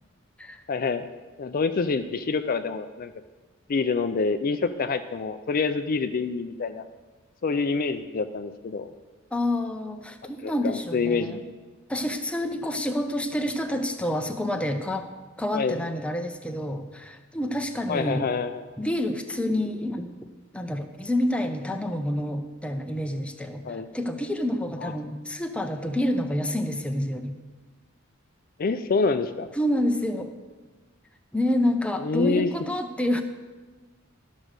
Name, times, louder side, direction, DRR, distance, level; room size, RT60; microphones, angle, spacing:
voice 1, 0.7-1.1 1.4-3.1 3.7-6.9 7.4-8.9 10.4-11.4 15.5-15.8 17.9-18.7 23.6-23.9 24.8-24.9 28.6-29.5 32.0-32.5, left 4 dB, 45° left, 9 dB, 0.4 m, -26 dB
voice 2, 9.3-11.4 11.9-15.1 15.4-18.2 18.8-20.1 20.5-27.4 29.6-30.3 31.3-33.2, left 1 dB, 5° left, 5 dB, 0.7 m, -28 dB
12.0 x 6.2 x 6.5 m, 1.3 s
head